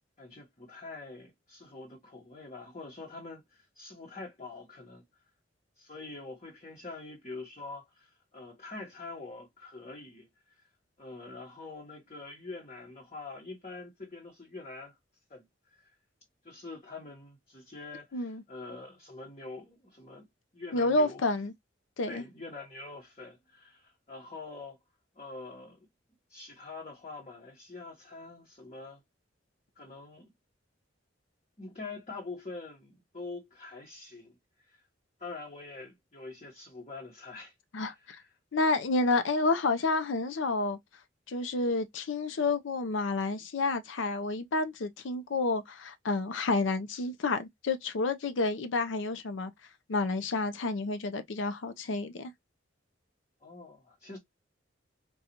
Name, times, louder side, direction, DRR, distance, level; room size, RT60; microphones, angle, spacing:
voice 1, 0.2-5.0 5.8-10.7 11.0-14.9 15.3-15.9 16.4-20.3 20.5-21.2 22.1-24.8 25.1-25.9 26.3-29.0 29.8-30.3 31.6-34.4 34.7-34.8 35.2-37.5 37.8-38.1 53.4-54.2, left 3 dB, 35° left, 0.9 m, -45 dB
voice 2, 18.1-18.4 20.7-21.5 22.0-22.2 37.7-38.2 38.5-40.8 41.3-49.5 49.9-52.3, left 3 dB, 85° left, 0.6 m, -29 dB
3.9 x 2.3 x 2.8 m
head